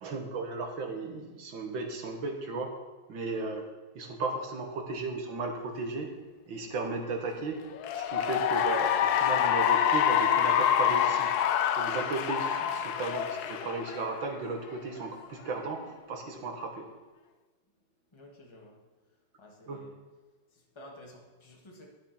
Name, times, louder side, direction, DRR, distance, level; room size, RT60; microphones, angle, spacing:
voice 1, 0.0-2.7 3.1-3.7 4.0-6.1 6.5-7.6 8.0-11.3 11.8-15.8 16.1-16.8 19.7-19.8, right 3 dB, 75° right, 3 dB, 2.1 m, -35 dB
Cheering / Applause, 7.7-14.4, left 9 dB, 70° left, 1.0 m, -26 dB
voice 2, 18.1-18.8 19.4-20.0 20.5-21.9, left 1 dB, 15° left, -1 dB, 1.5 m, -52 dB
11.0 x 7.2 x 5.9 m, 1.3 s
omnidirectional pair, 2.2 m